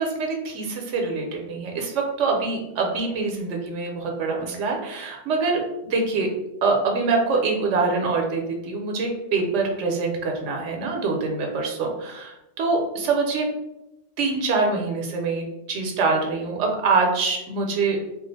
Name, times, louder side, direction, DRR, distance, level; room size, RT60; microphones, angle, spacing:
voice 1, 0.0-5.6 5.9-6.3 6.6-13.5 14.2-18.0, right 4 dB, 80° right, 2 dB, 0.9 m, -24 dB
2.4 x 2.4 x 3.9 m, 0.92 s
omnidirectional pair, 1.2 m